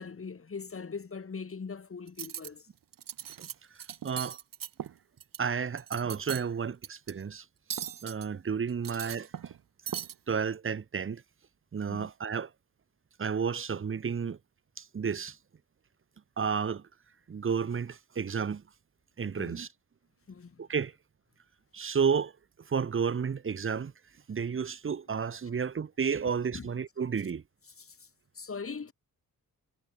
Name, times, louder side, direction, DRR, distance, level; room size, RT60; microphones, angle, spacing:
voice 1, 0.0-2.7 11.9-12.1 19.4-19.6 20.3-20.7 26.5-26.7 27.8-28.1 28.3-28.9, left 5 dB, 40° left, 5.6 m, -41 dB
Cutlery silverware, 2.1-2.5 2.9-3.5 3.8-5.4 5.7-6.5 6.8-7.1 7.7-8.3 8.7-9.6 9.9-10.1, right 9 dB, 85° right, 3.4 m, -39 dB
voice 2, 4.0-4.4 5.4-7.4 8.0-9.5 10.3-11.2 11.7-12.5 13.2-14.4 14.8-15.4 16.4-16.8 17.3-18.6 19.2-19.7 20.6-20.9 21.7-22.3 22.7-23.9 24.3-27.4, right 6 dB, 40° right, 1.1 m, -31 dB
wide cardioid pair, 110°, 33 cm